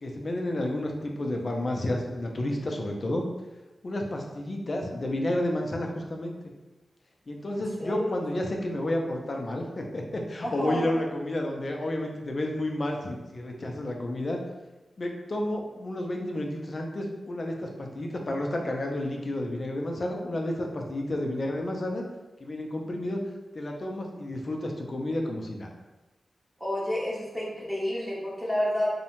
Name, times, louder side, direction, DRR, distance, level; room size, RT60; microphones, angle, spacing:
voice 1, 0.0-3.3 3.8-6.4 7.3-14.4 15.0-22.0 22.4-23.2 23.5-25.7, left 1 dB, 45° left, 1 dB, 0.4 m, -31 dB
voice 2, 7.5-8.1 10.4-10.9 26.6-28.9, left 1 dB, 5° right, -6 dB, 0.7 m, -30 dB
2.6 x 2.1 x 2.9 m, 1.1 s
wide cardioid pair, 125°, 0 cm